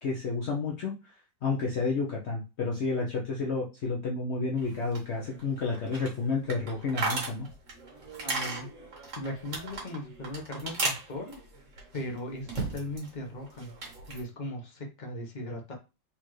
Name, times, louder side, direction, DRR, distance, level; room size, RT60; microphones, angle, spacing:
voice 1, 0.0-1.2 1.4-7.5, left 4 dB, 60° left, -1 dB, 0.7 m, -31 dB
sound 1, 4.6-13.1 13.4-14.2, right 3 dB, 45° right, 1.8 m, -37 dB
voice 2, 8.2-8.7 9.2-11.4 11.9-13.7 14.1-15.7, left 1 dB, 30° left, 1 dB, 1.0 m, -38 dB
4.1 x 3.6 x 3.1 m, 0.28 s
omnidirectional pair, 2.1 m